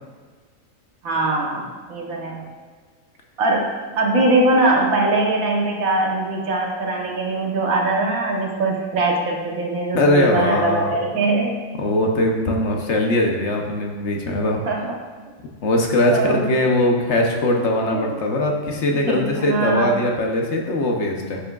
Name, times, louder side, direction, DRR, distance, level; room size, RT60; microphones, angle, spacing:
voice 1, 1.0-2.4 3.4-3.7 4.0-11.5 14.7-14.9 16.1-16.5 17.9-18.1 19.1-19.9, right 2 dB, 85° right, -1 dB, 1.5 m, -21 dB
voice 2, 9.9-10.9 11.8-14.6 15.6-21.4, left 1 dB, 60° left, 1 dB, 1.1 m, -20 dB
9.8 x 6.0 x 2.3 m, 1.5 s
omnidirectional pair, 1.4 m